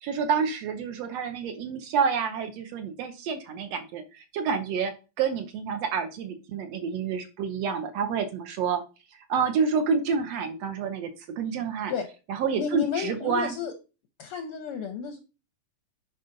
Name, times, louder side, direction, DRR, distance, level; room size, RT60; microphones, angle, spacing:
voice 1, 0.0-4.9 5.2-8.8 9.3-11.1 11.4-11.9 12.3-13.6, right 6 dB, 70° right, 1.7 m, -28 dB
voice 2, 12.6-13.7 14.2-15.2, left 7 dB, 75° left, 1.3 m, -32 dB
9.3 x 5.3 x 3.9 m
omnidirectional pair, 3.5 m